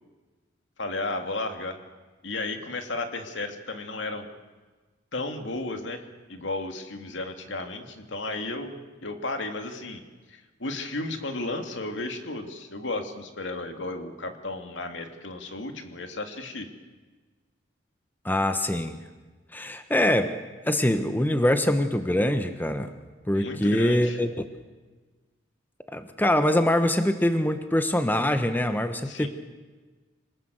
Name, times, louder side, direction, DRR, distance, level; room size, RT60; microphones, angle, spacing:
voice 1, 0.8-1.8 2.2-4.3 5.1-6.0 6.3-10.0 10.3-16.7 23.3-24.2 29.0-29.3, left 2 dB, 70° left, 5 dB, 2.7 m, -33 dB
voice 2, 18.2-19.0 19.5-20.3 20.7-22.9 23.3-24.3 25.9-29.3, left 1 dB, 10° left, 8 dB, 1.2 m, -24 dB
26.5 x 19.5 x 8.0 m, 1.3 s
head